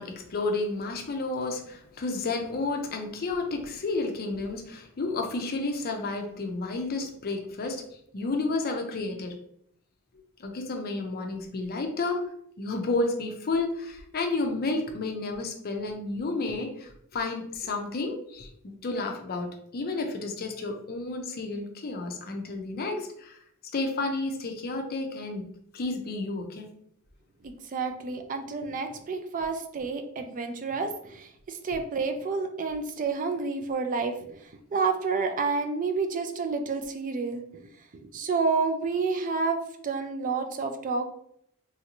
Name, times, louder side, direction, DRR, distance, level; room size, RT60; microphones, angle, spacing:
voice 1, 0.0-7.8 8.1-9.3 10.4-12.2 12.6-23.4 23.7-25.5 25.7-26.7 31.7-31.8, left 3 dB, 45° left, 4 dB, 0.5 m, -31 dB
voice 2, 27.4-34.4 34.7-37.4 38.1-41.0, right 4 dB, 35° right, 6 dB, 0.4 m, -29 dB
3.1 x 2.6 x 2.9 m, 0.69 s
head